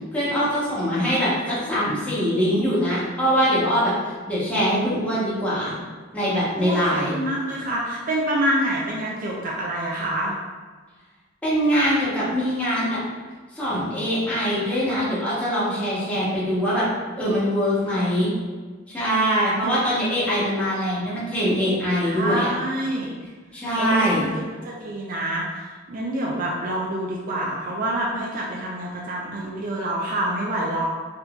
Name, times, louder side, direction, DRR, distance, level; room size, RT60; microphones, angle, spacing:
voice 1, 0.1-3.9 4.3-5.7 6.1-7.1 11.4-13.0 13.5-16.8 17.2-18.3 18.9-22.5 23.5-24.2, equal, 5° left, -9 dB, 0.9 m, -23 dB
voice 2, 6.6-10.3 22.0-23.1 23.8-24.3 24.6-25.5 25.9-30.9, right 1 dB, 45° right, -3 dB, 0.4 m, -26 dB
3.7 x 2.6 x 2.3 m, 1.4 s
head